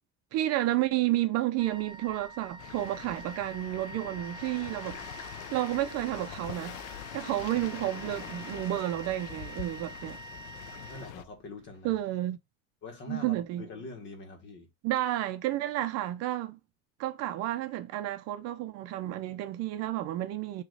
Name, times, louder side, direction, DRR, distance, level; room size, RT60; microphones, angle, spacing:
voice 1, 0.3-5.0 5.5-6.8 7.1-10.2 11.8-12.4 13.1-13.7 14.8-16.6 17.0-20.6, right 14 dB, 50° right, 0.7 m, -31 dB
Wind instrument woodwind instrument, 1.6-11.7, right 2 dB, 15° right, 0.4 m, -46 dB
sound 1, 2.6-11.2, left 13 dB, 80° left, 0.8 m, -44 dB
voice 2, 10.7-12.0 12.8-14.7, left 3 dB, 35° left, 1.7 m, -44 dB
6.7 x 3.1 x 5.0 m
cardioid pair, 175°, 33 cm